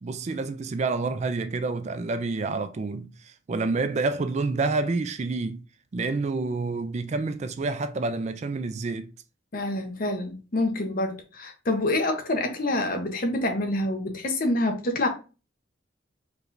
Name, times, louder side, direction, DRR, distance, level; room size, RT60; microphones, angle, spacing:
voice 1, 0.0-5.6 5.9-9.1, right 3 dB, 35° right, 0.3 m, -28 dB
voice 2, 9.5-15.1, left 1 dB, 45° left, 0.8 m, -27 dB
4.8 x 3.2 x 2.6 m
head